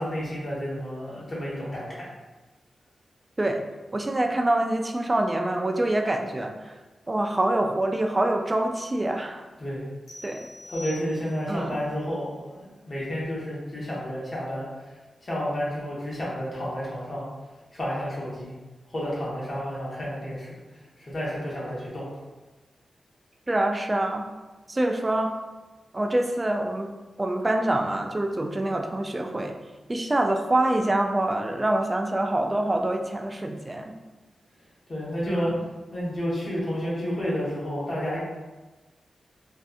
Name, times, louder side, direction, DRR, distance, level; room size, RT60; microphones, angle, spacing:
voice 1, 0.0-2.1 9.6-9.8 10.7-14.7 15.2-17.3 17.7-18.5 18.9-20.6 21.0-22.1 34.9-35.5 35.9-38.2, equal, 50° left, -7 dB, 0.9 m, -31 dB
voice 2, 3.9-6.7 7.1-9.5 10.2-10.5 11.5-11.8 23.5-24.3 24.7-25.3 25.9-26.9 27.2-29.6 29.9-33.9 35.3-35.5, right 1 dB, 25° right, 3 dB, 0.3 m, -25 dB
sound 1, 10.1-11.6, left 2 dB, 75° left, 0.8 m, -44 dB
2.7 x 2.3 x 2.4 m, 1.2 s
cardioid pair, 65°, 0 cm